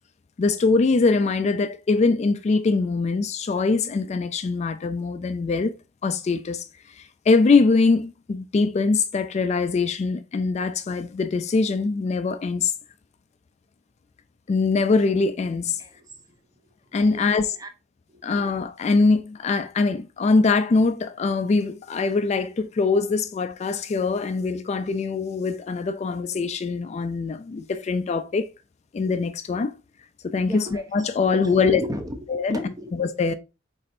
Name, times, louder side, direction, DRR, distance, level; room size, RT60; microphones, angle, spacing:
voice 1, 0.4-5.7 6.0-6.6 7.0-12.7 14.5-15.8 16.9-17.6 18.2-28.5 28.9-29.7 30.2-31.8 32.3-32.6 32.9-33.3, left 4 dB, 35° left, 0.3 m, -23 dB
voice 2, 15.8-16.4 17.1-17.7 18.1-18.3 30.5-33.0, equal, 20° right, 0.6 m, -36 dB
4.2 x 4.2 x 2.6 m
head